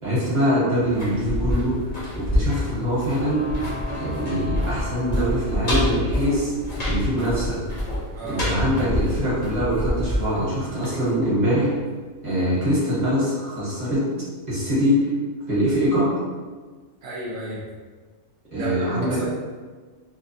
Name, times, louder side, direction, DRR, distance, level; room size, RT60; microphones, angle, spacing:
voice 1, 0.0-1.7 2.1-3.5 3.9-6.5 6.8-7.6 8.2-11.7 12.2-14.0 14.5-15.1 15.5-16.1 18.5-19.2, equal, 35° right, -8 dB, 1.0 m, -23 dB
sound 1, 0.8-11.6 11.9-12.0, left 1 dB, 45° left, 0.7 m, -27 dB
sound 2, 3.2-6.9, left 2 dB, 70° left, 1.0 m, -38 dB
voice 2, 8.1-8.5 17.0-17.6 18.5-19.2, right 2 dB, 80° right, -5 dB, 0.4 m, -32 dB
2.8 x 2.2 x 2.6 m, 1.4 s
omnidirectional pair, 1.5 m